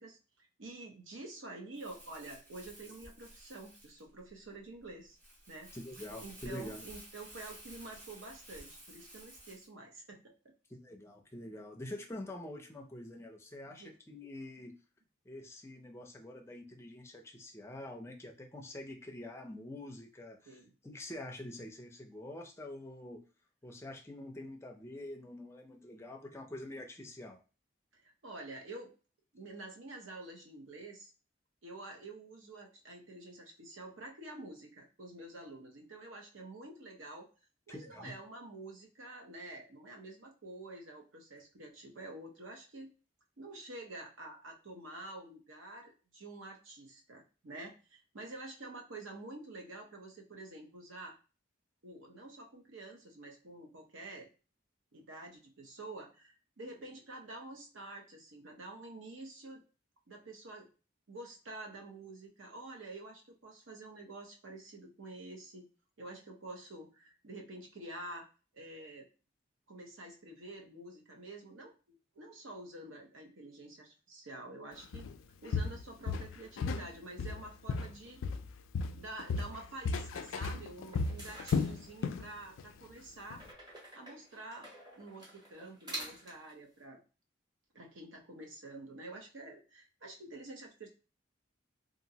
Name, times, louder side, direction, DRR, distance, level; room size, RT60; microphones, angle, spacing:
voice 1, 0.0-5.2 5.5-5.7 6.2-10.5 13.7-14.0 20.5-20.7 27.9-28.9 29.3-31.1 31.6-37.3 37.7-42.9 43.4-51.2 51.8-54.3 54.9-59.6 60.1-60.7 61.1-65.7 66.0-68.3 68.5-69.1 69.7-71.7 72.1-75.0 75.4-78.2 78.9-83.4 83.9-84.7 85.0-87.0 87.7-90.9, right 2 dB, 80° right, 2 dB, 0.8 m, -48 dB
Crumpling crinkling, 1.7-9.7, right 1 dB, 40° right, 1.4 m, -53 dB
voice 2, 5.7-6.8 10.7-14.7 15.3-23.2 23.6-27.4 37.7-38.1, left 1 dB, 15° left, 2 dB, 0.4 m, -46 dB
Walk footsteps, 74.9-75.1 75.5-76.9 77.2-78.5 78.7-82.3 82.6-82.8 83.3-83.4, left 4 dB, 80° left, 0.3 m, -34 dB
sound 1, 80.8-82.4 83.4-86.5, right 1 dB, 20° right, 0.8 m, -48 dB
2.9 x 2.4 x 2.7 m, 0.34 s
head